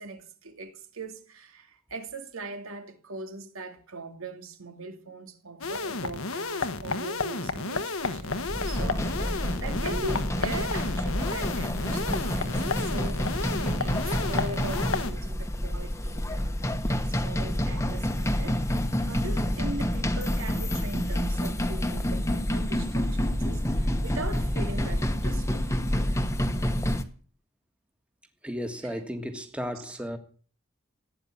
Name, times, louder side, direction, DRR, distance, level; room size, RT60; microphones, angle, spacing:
voice 1, 0.0-25.7 28.8-28.9 29.8-29.9, right 2 dB, 85° right, 2.6 m, -40 dB
sound 1, 5.6-15.1, left 3 dB, 85° left, 1.4 m, -32 dB
sound 2, 8.2-27.0, equal, 15° left, 1.2 m, -28 dB
voice 2, 28.4-30.2, equal, 5° right, 1.6 m, -34 dB
16.5 x 9.6 x 8.6 m
head